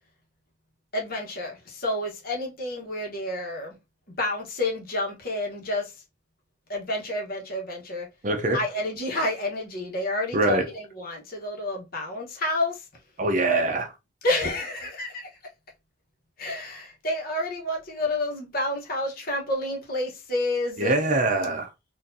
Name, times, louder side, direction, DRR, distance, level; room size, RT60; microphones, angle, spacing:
voice 1, 0.9-3.7 4.1-5.9 6.7-8.1 8.5-12.8 14.2-15.3 16.4-20.9, left 1 dB, 50° left, 1.2 m, -29 dB
voice 2, 8.2-8.6 10.3-10.7 13.2-13.9 20.8-21.7, right 2 dB, 40° right, 0.7 m, -23 dB
4.3 x 2.6 x 2.7 m
head